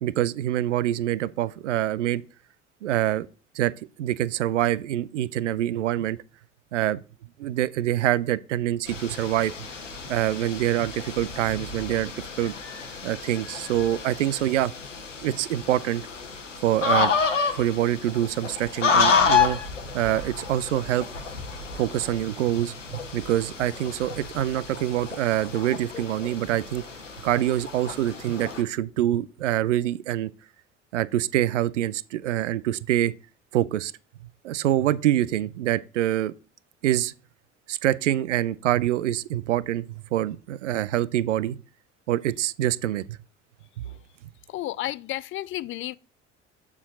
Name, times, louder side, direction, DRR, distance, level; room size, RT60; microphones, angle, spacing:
voice 1, 0.0-2.2 2.8-3.3 3.6-3.7 4.0-6.2 6.7-7.0 7.4-9.5 10.1-12.1 12.4-12.5 13.0-14.7 15.2-16.0 16.6-17.1 17.5-19.6 19.9-21.1 21.8-26.8 27.2-30.3 30.9-33.1 33.5-33.9 34.4-36.3 36.8-37.1 37.7-39.9 40.1-41.6 42.1-43.2, right 13 dB, 80° right, 0.5 m, -25 dB
sound 1, 8.9-28.6, left 5 dB, 90° left, 1.0 m, -29 dB
voice 2, 44.5-46.0, left 15 dB, 35° left, 0.4 m, -32 dB
6.8 x 4.8 x 6.1 m
figure-of-eight pair, 60°, 36 cm